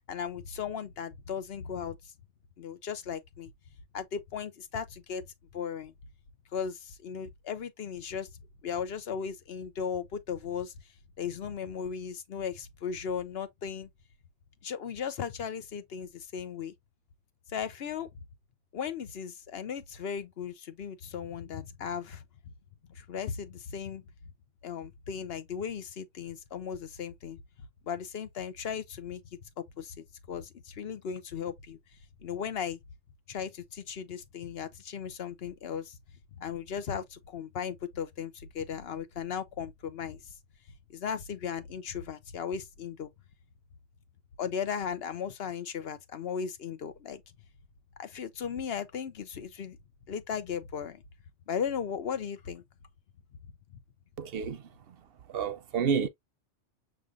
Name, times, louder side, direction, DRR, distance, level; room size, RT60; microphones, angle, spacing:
voice 1, 0.1-2.0 2.6-3.5 3.9-5.2 5.5-5.9 6.5-8.3 8.6-10.7 11.2-13.9 14.6-16.7 17.5-18.1 18.7-22.2 22.9-24.0 24.6-27.4 27.9-29.2 29.6-31.8 32.2-32.8 33.3-36.0 36.4-40.2 40.9-43.1 44.4-47.2 48.0-49.8 50.1-51.0 51.5-52.6, left 7 dB, 60° left, 1.0 m, -36 dB
voice 2, 54.2-54.6 55.3-56.1, right 6 dB, 60° right, 0.8 m, -29 dB
6.4 x 3.2 x 2.4 m
omnidirectional pair, 1.2 m